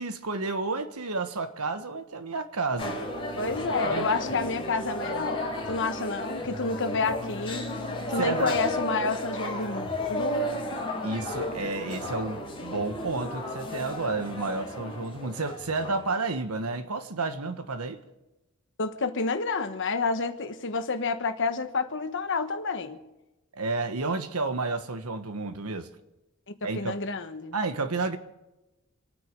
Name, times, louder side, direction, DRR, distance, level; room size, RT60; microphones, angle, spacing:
voice 1, 0.0-3.0 3.9-4.1 8.2-8.6 11.0-18.0 23.6-25.9 26.6-27.0 27.5-28.2, right 3 dB, 85° right, 9 dB, 1.4 m, -31 dB
sound 1, 2.8-16.1, left 1 dB, 25° left, 4.4 m, -33 dB
voice 2, 3.4-7.7 8.1-10.5 18.8-23.0 26.7-27.5, left 4 dB, 60° left, 9 dB, 1.3 m, -29 dB
28.0 x 9.5 x 5.2 m, 1.0 s
head